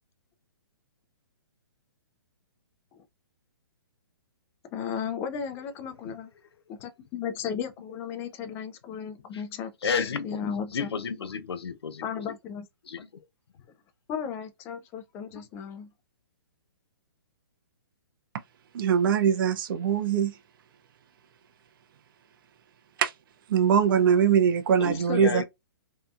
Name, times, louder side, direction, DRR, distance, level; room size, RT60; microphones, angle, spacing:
voice 1, 4.7-6.3 6.7-10.9 12.0-12.7 14.1-15.9 24.9-25.4, left 7 dB, 20° left, 0.3 m, -35 dB
voice 2, 9.8-10.4 10.7-12.0 12.9-13.1 24.8-25.4, left 6 dB, 85° left, 0.5 m, -32 dB
voice 3, 18.7-20.4 23.0-23.1 23.5-25.4, right 7 dB, 55° right, 0.4 m, -22 dB
2.7 x 2.2 x 2.4 m
hypercardioid pair, 145°, 13 cm